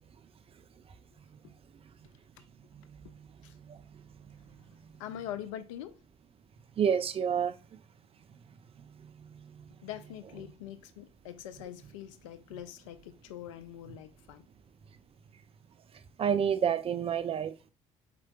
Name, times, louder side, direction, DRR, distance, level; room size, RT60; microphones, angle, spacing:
voice 1, 2.0-2.4 3.0-3.1 3.4-3.6 4.6-4.7 4.9-6.0 9.8-14.5, left 11 dB, 75° left, 0.4 m, -44 dB
voice 2, 6.8-7.5 16.2-17.7, right 8 dB, 35° right, 0.4 m, -28 dB
4.4 x 3.8 x 2.2 m
figure-of-eight pair, 50°, 17 cm